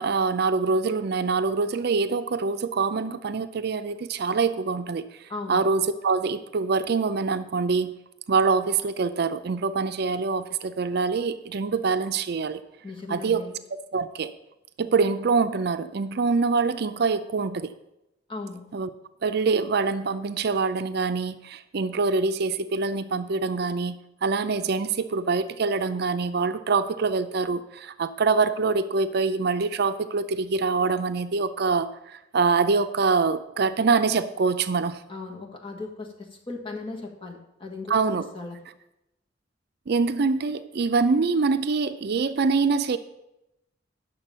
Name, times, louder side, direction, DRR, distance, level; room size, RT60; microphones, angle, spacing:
voice 1, 0.0-5.0 5.5-7.9 8.3-12.6 13.1-13.4 13.7-14.3 14.8-17.7 18.7-18.9 19.2-24.0 24.2-35.0 37.9-38.2 39.9-43.0, right 4 dB, 60° right, 10 dB, 0.5 m, -25 dB
voice 2, 5.3-5.6 12.8-13.5 18.3-18.6 35.1-37.9 38.3-38.6, left 3 dB, 30° left, 0 dB, 1.6 m, -37 dB
9.7 x 6.8 x 5.5 m, 0.89 s
head